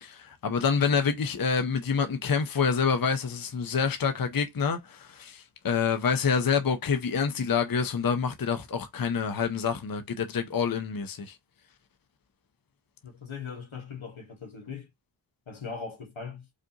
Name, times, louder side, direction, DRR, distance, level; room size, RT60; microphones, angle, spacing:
voice 1, 0.0-11.4, left 6 dB, 50° left, 0.7 m, -27 dB
voice 2, 13.0-14.9 15.5-16.4, left 5 dB, 85° left, 1.6 m, -40 dB
5.1 x 2.5 x 2.8 m
wide cardioid pair, 65°, 46 cm